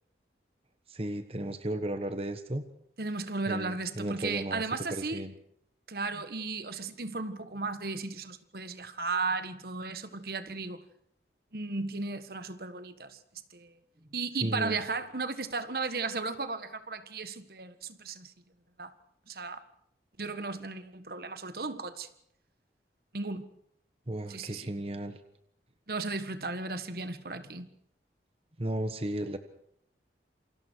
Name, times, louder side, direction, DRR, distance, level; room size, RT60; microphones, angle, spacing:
voice 1, 0.9-2.6 3.5-4.6 4.9-5.3 14.4-14.8 24.1-25.2 28.6-29.4, right 1 dB, 35° right, 1.3 m, -34 dB
voice 2, 3.0-5.2 5.9-10.8 11.5-13.2 13.5-13.8 14.1-18.3 18.8-18.9 19.3-19.6 20.2-22.1 23.1-23.5 24.3-24.7 25.9-27.7, right 3 dB, 55° right, 1.6 m, -35 dB
28.5 x 25.5 x 4.7 m
head